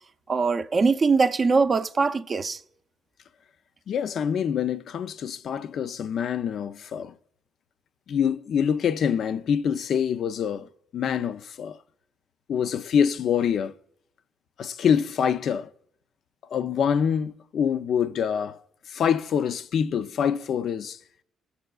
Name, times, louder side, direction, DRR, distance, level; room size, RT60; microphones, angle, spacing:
voice 1, 0.3-2.6, right 4 dB, 40° right, 0.4 m, -22 dB
voice 2, 3.9-7.1 8.1-10.7 10.9-11.8 12.5-13.7 14.6-15.7 16.5-18.6 18.9-21.0, left 8 dB, 65° left, 0.4 m, -25 dB
16.5 x 6.8 x 2.3 m
cardioid pair, 90°, 0 cm